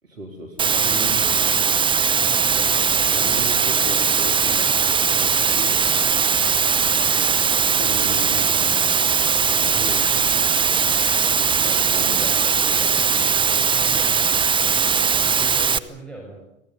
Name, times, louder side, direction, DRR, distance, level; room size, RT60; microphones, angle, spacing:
voice 1, 0.0-1.6 3.1-6.3 7.8-11.0 11.5-13.3, right 2 dB, 80° right, 2 dB, 3.7 m, -37 dB
Water, 0.6-15.8, right 6 dB, 15° right, 1.1 m, -19 dB
voice 2, 2.2-3.2 9.7-9.9 13.7-14.3 15.3-16.4, right 2 dB, 5° left, -1 dB, 7.3 m, -39 dB
26.0 x 18.0 x 9.5 m, 0.86 s
figure-of-eight pair, 95°, 38 cm